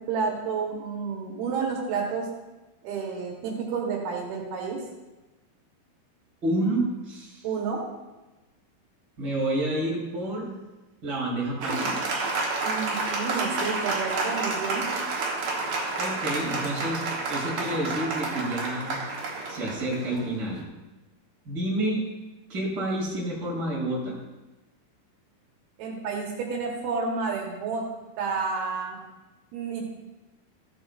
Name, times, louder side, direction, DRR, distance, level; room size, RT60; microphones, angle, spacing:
voice 1, 0.1-2.3 2.8-4.8 7.4-7.8 12.6-14.9 25.8-27.8 28.2-29.0 29.5-29.9, right 5 dB, 80° right, -1 dB, 3.3 m, -30 dB
voice 2, 6.4-7.4 9.2-10.5 11.0-12.0 16.0-17.0 17.3-19.0 19.5-20.6 21.4-22.0 22.5-24.2, right 1 dB, 30° right, -5 dB, 3.0 m, -29 dB
Applause, 11.6-20.6, right 3 dB, 60° right, 2.1 m, -30 dB
14.5 x 8.8 x 2.5 m, 1.1 s
omnidirectional pair, 4.5 m